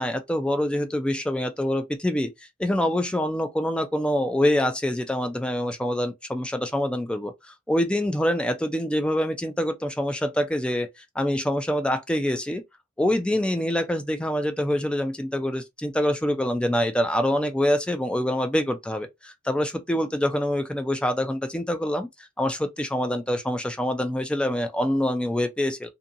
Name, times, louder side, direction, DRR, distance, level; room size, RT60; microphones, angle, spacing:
voice 1, 0.0-2.3 2.6-12.6 13.0-22.1 22.4-25.9, left 1 dB, 5° left, 0.3 m, -25 dB
2.7 x 2.6 x 2.5 m
head